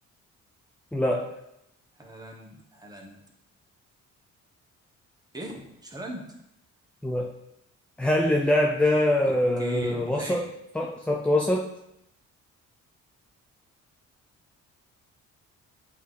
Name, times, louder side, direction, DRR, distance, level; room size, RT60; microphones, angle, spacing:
voice 1, 0.9-1.4 7.0-7.3 8.0-11.7, left 1 dB, 5° left, 1 dB, 0.5 m, -24 dB
voice 2, 2.0-3.2 5.3-6.3 9.2-9.3 9.6-10.4, right 1 dB, 15° right, -1 dB, 1.3 m, -39 dB
8.1 x 3.1 x 4.0 m, 0.81 s
cardioid pair, 90°, 30 cm